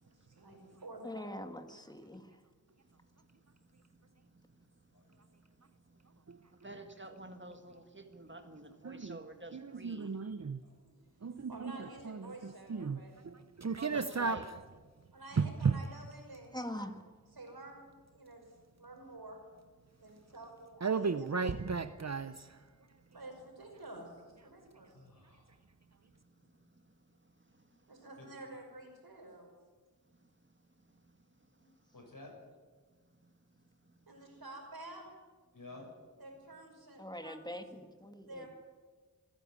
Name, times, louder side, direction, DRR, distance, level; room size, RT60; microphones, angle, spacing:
voice 1, 0.0-1.4 10.2-10.4 10.7-13.1 15.1-17.0 17.3-18.4 18.8-19.4 20.0-21.9 23.1-24.9 26.4-26.5 27.9-29.5 34.1-35.0 36.2-37.6 38.3-38.5, right 2 dB, 80° right, 5.7 m, -50 dB
voice 2, 1.0-2.3 16.5-16.9 37.0-38.5, equal, 10° left, 2.0 m, -43 dB
voice 3, 6.6-10.1 13.8-14.5, right 1 dB, 30° right, 1.9 m, -48 dB
voice 4, 8.8-9.2 9.5-10.6 11.2-11.7 12.0-14.4 15.4-15.8 20.8-22.6, right 5 dB, 45° right, 0.8 m, -35 dB
voice 5, 24.9-25.5 28.2-28.3 31.6-32.4 35.5-35.9, left 2 dB, 60° left, 7.1 m, -53 dB
26.5 x 10.5 x 9.5 m
wide cardioid pair, 60°, 36 cm